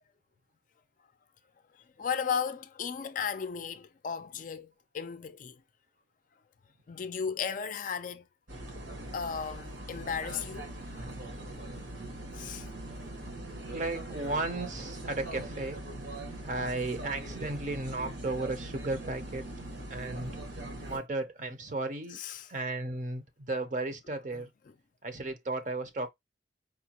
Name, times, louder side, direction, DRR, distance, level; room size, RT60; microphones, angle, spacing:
voice 1, 2.0-5.6 6.9-8.3 9.1-10.7 12.3-12.7 22.1-22.5 24.3-24.4, left 7 dB, 45° left, 0.4 m, -35 dB
sound 1, 8.5-21.0, right 1 dB, 75° right, 1.3 m, -41 dB
voice 2, 12.9-15.8 16.4-19.4 19.9-20.3 20.8-22.2 22.5-24.5 25.0-26.1, right 2 dB, 40° right, 0.7 m, -35 dB
4.8 x 2.2 x 2.9 m
head